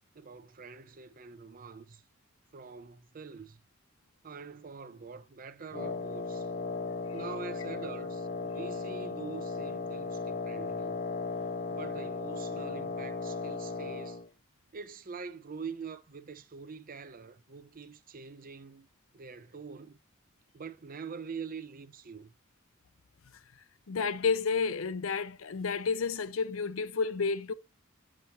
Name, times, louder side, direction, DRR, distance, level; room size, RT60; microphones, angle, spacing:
voice 1, 0.1-2.0 2.5-3.6 4.2-6.5 7.1-11.0 11.7-14.2 14.7-18.9 19.1-20.0 20.5-22.3, right 5 dB, 45° right, 0.7 m, -44 dB
Wind instrument woodwind instrument, 5.7-14.3, left 4 dB, 45° left, 0.8 m, -36 dB
voice 2, 23.9-27.5, left 5 dB, 75° left, 0.6 m, -31 dB
7.4 x 6.9 x 2.9 m
head